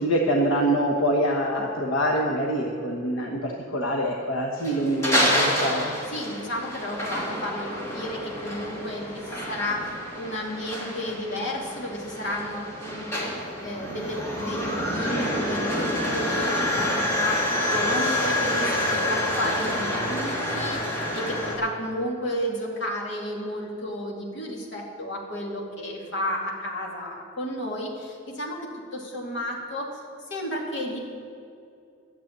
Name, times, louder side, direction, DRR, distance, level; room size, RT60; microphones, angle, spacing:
voice 1, 0.0-5.9, equal, 85° left, -1 dB, 1.2 m, -25 dB
sound 1, 4.6-21.6, left 1 dB, 15° left, 2.7 m, -28 dB
voice 2, 6.1-13.3 13.6-28.6 28.9-29.9 30.3-31.0, left 1 dB, 65° left, -2 dB, 2.6 m, -32 dB
12.5 x 7.4 x 8.7 m, 2.5 s
head